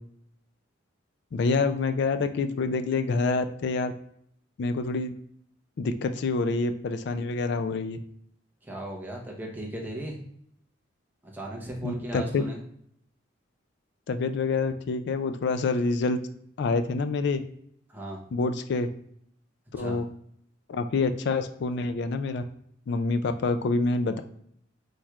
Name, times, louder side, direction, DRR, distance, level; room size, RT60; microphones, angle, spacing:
voice 1, 1.3-3.9 4.6-5.1 5.8-8.0 11.8-12.4 14.1-16.2 16.6-17.4 18.3-18.9 19.7-20.0 20.7-22.4 22.9-24.2, left 3 dB, 60° left, 9 dB, 0.3 m, -27 dB
voice 2, 8.6-10.2 11.2-12.6 17.9-18.2 19.8-20.0, right 1 dB, 10° right, -1 dB, 0.9 m, -37 dB
4.6 x 4.3 x 2.4 m, 0.68 s
head